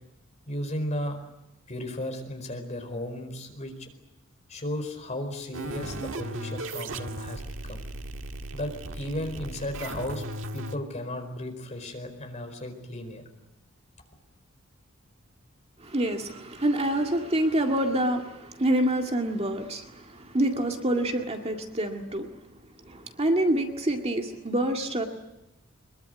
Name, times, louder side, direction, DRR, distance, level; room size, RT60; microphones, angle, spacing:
voice 1, 0.5-1.2 1.7-3.9 4.5-7.8 8.5-10.2 10.5-13.2, left 1 dB, 35° left, 5 dB, 4.6 m, -35 dB
sound 1, 5.5-10.8, right 1 dB, 65° right, 1.6 m, -36 dB
voice 2, 15.8-22.3 22.9-25.1, right 1 dB, 30° right, 3 dB, 2.0 m, -27 dB
23.5 x 22.0 x 9.4 m, 0.90 s
head